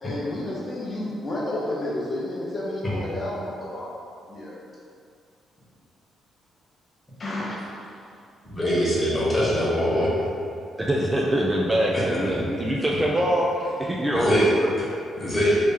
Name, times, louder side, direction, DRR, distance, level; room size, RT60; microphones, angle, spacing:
voice 1, 0.0-4.0 4.3-4.6 7.2-7.9, left 1 dB, 40° left, -6 dB, 0.6 m, -31 dB
voice 2, 8.6-10.1 11.9-12.0 14.1-14.4 15.2-15.6, equal, 20° left, -7 dB, 1.2 m, -22 dB
voice 3, 10.8-14.7, equal, 15° right, -3 dB, 0.4 m, -24 dB
3.2 x 2.8 x 3.5 m, 2.4 s
cardioid pair, 90°, 0 cm